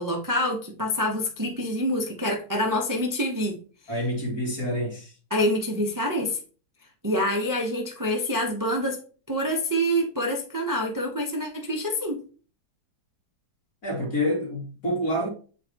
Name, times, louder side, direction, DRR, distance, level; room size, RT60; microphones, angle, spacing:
voice 1, 0.0-3.6 5.3-6.4 7.0-9.0 9.3-12.2, equal, 20° right, 0.5 m, -26 dB
voice 2, 3.9-5.2 13.8-15.3, equal, 45° left, 2.8 m, -27 dB
8.0 x 4.7 x 2.9 m
omnidirectional pair, 2.1 m